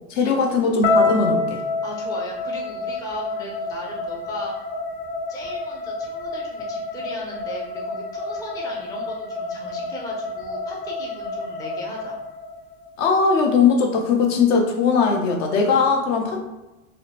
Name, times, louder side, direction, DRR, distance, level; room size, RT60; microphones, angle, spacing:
voice 1, 0.1-1.6 13.0-16.4, left 5 dB, 55° left, 2 dB, 0.7 m, -19 dB
sound 1, 0.8-13.0, left 3 dB, 25° left, 0.8 m, -28 dB
voice 2, 1.8-4.5 5.3-12.2, left 1 dB, 10° left, -3 dB, 0.4 m, -37 dB
2.7 x 2.0 x 2.8 m, 1.1 s
hypercardioid pair, 85°, 45 cm